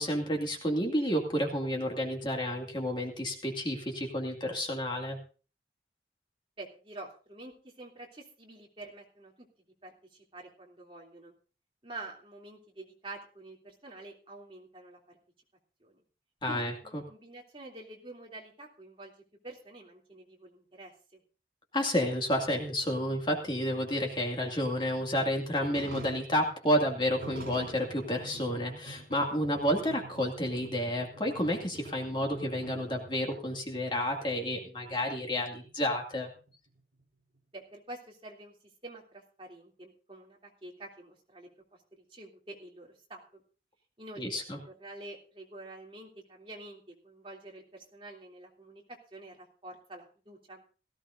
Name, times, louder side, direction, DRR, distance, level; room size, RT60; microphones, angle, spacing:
voice 1, 0.0-5.2 16.4-17.0 21.7-36.3 44.2-44.6, equal, 25° left, 1 dB, 2.3 m, -30 dB
voice 2, 6.6-9.5 9.8-11.3 11.8-15.2 15.8-16.0 16.5-19.1 19.4-21.2 37.5-38.5 38.8-41.5 41.9-43.4 44.0-50.6, right 2 dB, 30° right, -1 dB, 3.1 m, -48 dB
sound 1, 25.6-34.1 34.3-34.4 34.9-35.0 35.4-37.0, right 2 dB, 70° right, 5.1 m, -46 dB
18.0 x 15.5 x 2.7 m, 0.36 s
head